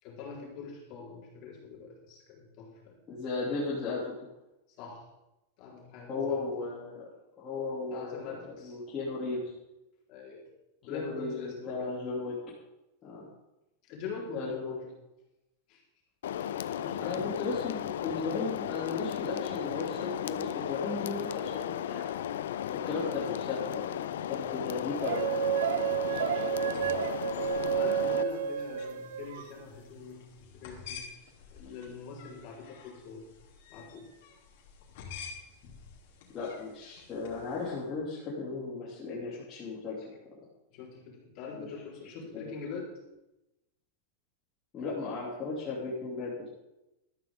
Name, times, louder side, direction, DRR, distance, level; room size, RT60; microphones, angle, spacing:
voice 1, 0.0-3.0 4.8-5.1 5.6-6.7 7.9-8.7 10.1-10.4 10.8-12.0 13.8-14.8 15.7-15.8 16.4-17.2 27.8-31.1 31.5-33.3 33.7-34.1 35.6-35.8 40.7-42.9, left 5 dB, 35° left, -3 dB, 4.3 m, -43 dB
voice 2, 3.1-4.3 6.1-7.1 7.4-9.5 10.9-12.4 13.0-13.3 14.3-14.8 17.0-22.2 22.8-24.0 24.3-25.4 25.7-27.1 36.3-40.1 41.5-41.7 42.3-42.5 44.7-46.5, left 4 dB, 20° left, -8 dB, 2.9 m, -36 dB
sound 1, 16.2-28.2, left 10 dB, 90° left, 0.6 m, -35 dB
sound 2, 25.0-29.5, right 10 dB, 85° right, 0.6 m, -30 dB
sound 3, 26.5-37.8, left 6 dB, 55° left, 3.2 m, -50 dB
13.5 x 13.0 x 3.7 m, 0.95 s
supercardioid pair, 175°, 0 cm